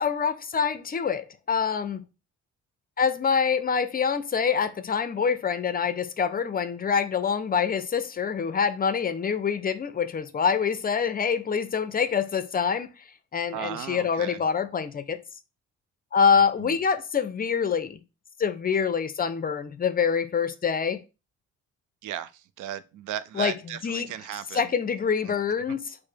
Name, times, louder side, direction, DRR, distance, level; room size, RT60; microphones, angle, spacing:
voice 1, 0.0-2.0 3.0-12.9 13.3-15.2 16.1-18.0 18.4-21.0 23.3-24.1 24.5-26.0, left 6 dB, 30° left, 0.5 m, -25 dB
voice 2, 13.5-14.4 16.6-16.7 22.0-22.3 22.6-24.6, right 11 dB, 80° right, 0.5 m, -35 dB
4.8 x 2.1 x 4.4 m
cardioid pair, 90°, 30 cm